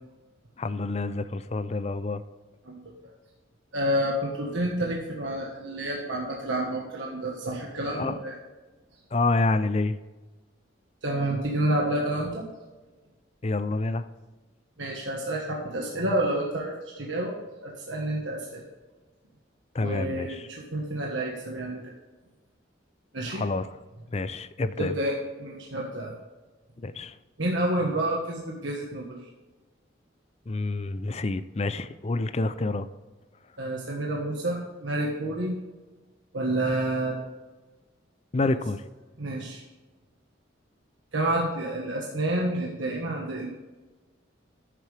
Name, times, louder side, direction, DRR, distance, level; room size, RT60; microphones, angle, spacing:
voice 1, 0.6-2.2 7.9-8.2 9.1-10.0 13.4-14.1 19.7-20.5 23.2-23.7 24.1-25.0 26.8-27.2 30.5-32.9 38.3-38.8, left 2 dB, 35° left, 13 dB, 0.5 m, -28 dB
voice 2, 3.7-8.4 11.0-12.4 14.8-18.7 19.8-21.9 23.1-23.4 24.8-26.1 27.4-29.2 33.6-35.6 36.3-37.2 38.4-38.5 39.2-39.6 41.1-43.5, right 1 dB, 75° right, -1 dB, 1.5 m, -29 dB
14.0 x 7.5 x 3.4 m, 1.2 s
head